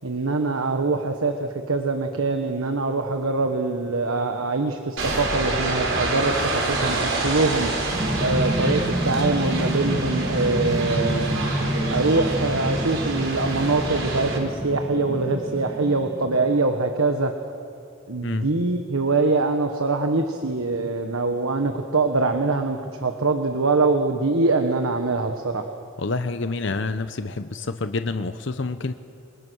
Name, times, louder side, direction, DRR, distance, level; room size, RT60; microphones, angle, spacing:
voice 1, 0.0-7.7 8.2-11.3 11.9-17.3 18.1-25.7, right 3 dB, 80° right, 5 dB, 1.3 m, -23 dB
sound 1, 5.0-14.4, right 2 dB, 65° right, 4.2 m, -27 dB
sound 2, 7.9-16.5, equal, 25° right, 3.9 m, -28 dB
voice 2, 26.0-28.9, left 3 dB, 60° left, 10 dB, 0.7 m, -28 dB
28.0 x 22.5 x 6.3 m, 2.4 s
head